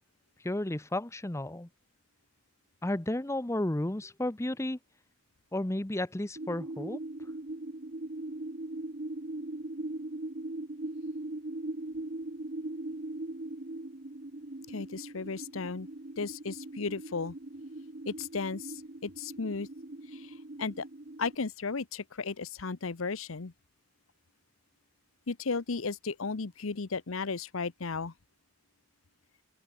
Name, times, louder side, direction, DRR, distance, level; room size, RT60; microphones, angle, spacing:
voice 1, 0.4-1.7 2.8-4.8 5.5-7.0, left 1 dB, 15° left, 0.8 m, -32 dB
sound 1, 6.4-21.4, right 2 dB, 45° right, 1.2 m, -40 dB
voice 2, 14.7-15.9 16.2-17.3 18.1-18.7 19.0-19.7 20.1-20.8 21.2-23.5 25.3-28.1, left 4 dB, 75° left, 0.9 m, -35 dB
open air
head